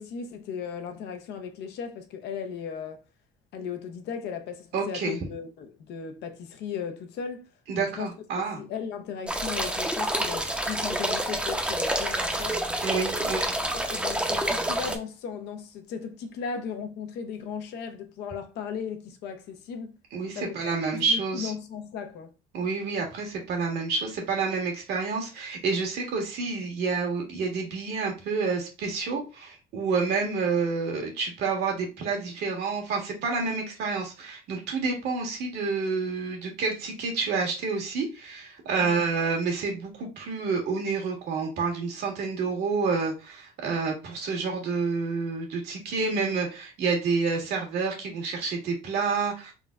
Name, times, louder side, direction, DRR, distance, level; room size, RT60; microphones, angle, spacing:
voice 1, 0.0-3.0 3.5-7.5 7.8-8.1 8.3-12.6 13.1-13.3 13.7-19.9 20.3-22.3 38.8-39.1, left 6 dB, 80° left, 0.7 m, -36 dB
voice 2, 4.7-5.2 7.7-8.6 12.8-13.5 20.1-21.5 22.5-49.5, right 4 dB, 75° right, 1.5 m, -29 dB
sound 1, 9.3-15.0, right 1 dB, 5° right, 0.6 m, -28 dB
3.7 x 2.1 x 3.5 m
cardioid pair, 110°, 17 cm